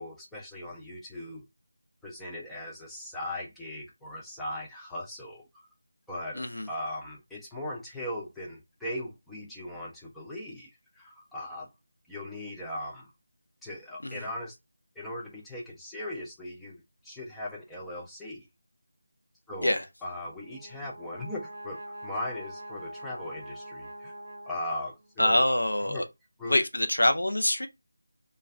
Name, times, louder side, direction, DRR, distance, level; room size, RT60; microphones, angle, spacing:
voice 1, 0.0-1.4 2.0-5.5 6.1-11.7 12.1-13.1 13.6-14.5 15.0-18.5 19.5-24.1 24.5-25.5 25.9-26.1 26.4-26.6, left 1 dB, ahead, 0.4 m, -39 dB
voice 2, 6.4-6.7 14.0-14.2 19.6-19.8 25.2-26.0 26.5-27.7, left 1 dB, 70° left, 0.6 m, -25 dB
Brass instrument, 20.1-25.2, right 1 dB, 35° right, 0.8 m, -44 dB
2.3 x 2.2 x 3.3 m
figure-of-eight pair, 160°, 0 cm